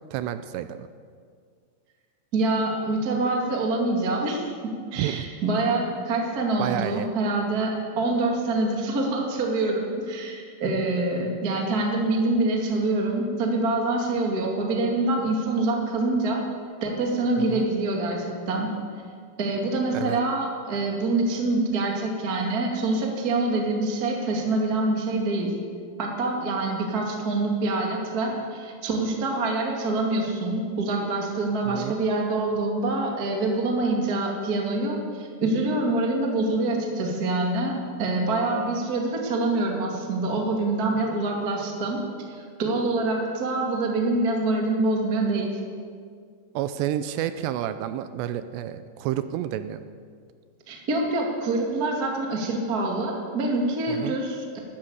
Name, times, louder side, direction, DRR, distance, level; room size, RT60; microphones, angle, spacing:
voice 1, 0.1-0.9 5.0-5.2 6.6-7.1 17.4-17.6 19.9-20.2 31.7-31.9 46.6-49.8 53.9-54.2, right 11 dB, 80° right, 11 dB, 2.6 m, -30 dB
voice 2, 2.3-16.4 16.8-18.7 19.4-25.5 26.0-42.0 42.3-45.6 50.7-54.6, right 2 dB, 35° right, 0 dB, 1.5 m, -25 dB
13.5 x 13.5 x 7.9 m, 2.1 s
omnidirectional pair, 5.3 m